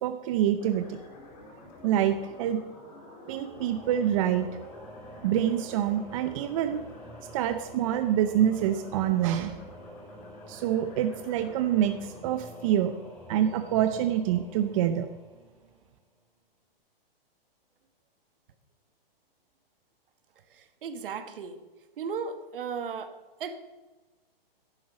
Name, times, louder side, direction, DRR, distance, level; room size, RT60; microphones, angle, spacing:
voice 1, 0.0-1.0 1.8-2.6 3.3-4.5 5.2-6.8 7.3-9.6 10.5-12.9 13.3-15.1, right 10 dB, 35° right, 9 dB, 0.6 m, -26 dB
sound 1, 0.5-13.7, left 2 dB, 40° left, 2.9 m, -51 dB
Singing / Musical instrument, 3.5-16.0, equal, 5° left, 2.8 m, -47 dB
voice 2, 20.8-21.6 22.0-23.1 23.4-23.5, right 6 dB, 65° right, 10 dB, 1.5 m, -35 dB
11.0 x 9.2 x 6.0 m, 1.2 s
hypercardioid pair, 145°, 30 cm